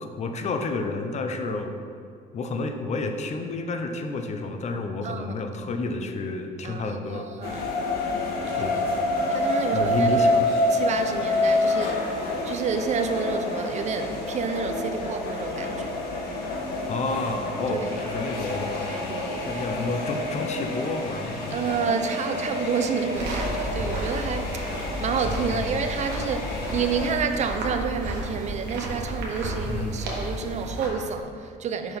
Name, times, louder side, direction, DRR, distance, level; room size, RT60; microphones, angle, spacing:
voice 1, 0.0-1.7 2.3-7.3 8.5-8.8 9.7-10.3 16.9-19.1 19.5-21.8 25.5-25.8 29.7-30.0, left 3 dB, 40° left, 0.7 m, -30 dB
voice 2, 5.0-5.3 6.6-7.7 8.4-8.8 9.3-12.2 12.4-16.0 17.7-17.8 18.8-19.7 21.5-24.7 25.0-32.0, right 6 dB, 45° right, 0.6 m, -29 dB
sound 1, 7.4-27.1, left 2 dB, 70° left, 1.4 m, -28 dB
sound 2, 23.1-30.9, equal, 80° right, 1.4 m, -32 dB
5.8 x 4.5 x 5.2 m
cardioid pair, 110°, 17 cm